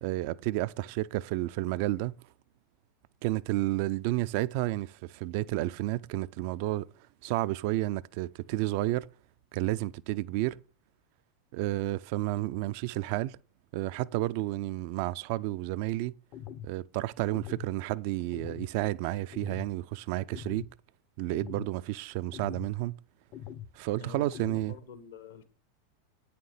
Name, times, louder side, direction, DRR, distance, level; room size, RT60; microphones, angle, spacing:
voice 1, 0.0-2.2 3.2-6.9 7.2-9.1 9.5-10.6 11.5-13.4 13.7-16.2 16.6-20.7 21.2-22.9 23.7-24.7, right 16 dB, 50° right, 0.5 m, -31 dB
sound 1, 16.3-16.7 17.3-17.7 18.3-18.7 19.3-19.7 20.3-20.7 21.3-21.7 22.3-22.7 23.3-23.7 24.3-24.7, left 10 dB, 45° left, 0.7 m, -43 dB
voice 2, 24.0-25.4, left 7 dB, 70° left, 1.5 m, -47 dB
9.0 x 6.6 x 5.5 m
figure-of-eight pair, 90°, 0 cm